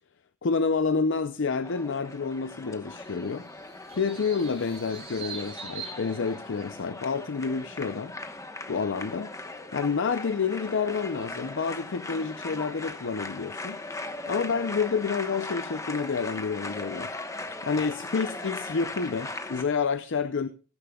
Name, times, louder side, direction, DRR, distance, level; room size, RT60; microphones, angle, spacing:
voice 1, 0.4-3.5 3.9-8.1 8.7-9.3 9.7-17.1 17.6-20.5, left 5 dB, 65° left, 0.6 m, -29 dB
sound 1, 1.6-19.6, left 2 dB, 15° left, 1.2 m, -39 dB
sound 2, 2.9-6.9, right 6 dB, 35° right, 5.4 m, -44 dB
21.5 x 10.0 x 2.3 m
head